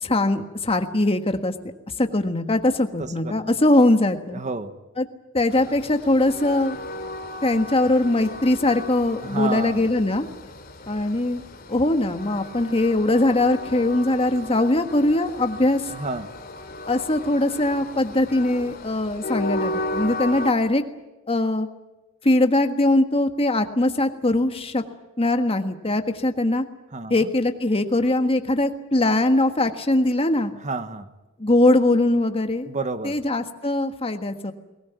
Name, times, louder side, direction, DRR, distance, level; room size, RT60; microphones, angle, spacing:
voice 1, 0.0-1.5 2.0-4.4 5.0-5.1 5.3-6.8 7.4-10.3 10.9-11.4 11.7-15.8 16.9-20.8 21.3-21.7 22.2-24.8 25.2-26.6 27.1-30.5 31.4-32.7 33.0-34.5, left 2 dB, 30° left, 7 dB, 1.5 m, -21 dB
voice 2, 3.0-3.5 4.3-4.8 9.2-9.9 15.9-16.3 26.9-27.3 30.6-31.1 32.7-33.2, right 3 dB, 35° right, 10 dB, 1.3 m, -30 dB
Train, 5.5-20.5, left 2 dB, 50° left, 3.0 m, -35 dB
22.0 x 18.5 x 9.5 m, 1.1 s
head